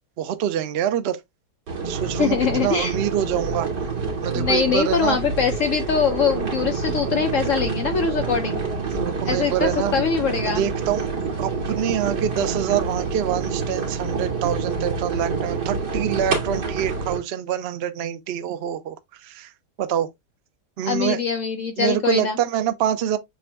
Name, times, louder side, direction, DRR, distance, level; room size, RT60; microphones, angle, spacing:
voice 1, 0.2-1.2 1.8-3.7 4.2-5.2 8.9-9.9 10.4-19.5 19.8-20.1 20.8-21.2 21.8-23.2, right 10 dB, 65° right, 0.6 m, -26 dB
sound 1, 1.7-17.2, right 4 dB, 90° right, 2.4 m, -27 dB
voice 2, 2.2-2.9 4.4-8.6 9.2-10.6 20.8-22.4, left 6 dB, 60° left, 0.9 m, -23 dB
7.5 x 2.6 x 2.2 m
omnidirectional pair, 1.8 m